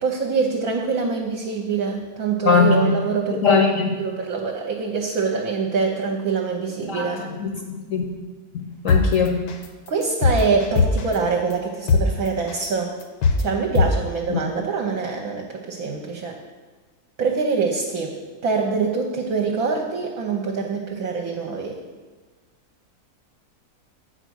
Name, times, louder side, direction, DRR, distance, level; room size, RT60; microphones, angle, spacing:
voice 1, 0.0-3.6 4.0-7.2 9.9-13.0 13.4-16.4 17.2-21.8, right 4 dB, 65° right, 2 dB, 1.1 m, -24 dB
voice 2, 2.4-3.0 3.3-3.9 6.9-7.1 7.4-7.5 7.9-8.0 8.5-9.4 14.3-14.4, left 5 dB, 60° left, 2 dB, 0.9 m, -20 dB
sound 1, 8.9-9.0 9.5-9.6 10.0-11.1 11.5-11.6 11.9-12.0 12.5-12.6 13.0-13.4 13.7-13.9, left 5 dB, 85° left, 1.4 m, -18 dB
8.0 x 4.5 x 6.2 m, 1.4 s
omnidirectional pair, 1.8 m